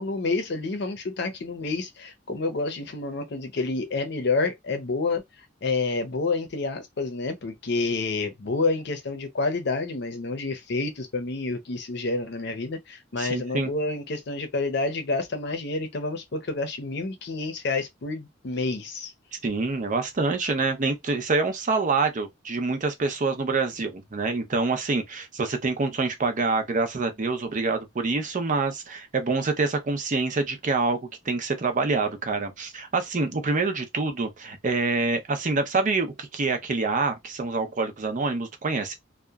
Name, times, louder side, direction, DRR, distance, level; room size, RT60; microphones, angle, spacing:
voice 1, 0.0-5.2 5.6-19.1, left 3 dB, 60° left, 0.6 m, -29 dB
voice 2, 13.2-13.7 19.4-31.0 31.2-38.9, right 3 dB, 45° right, 0.6 m, -26 dB
2.8 x 2.2 x 2.3 m
head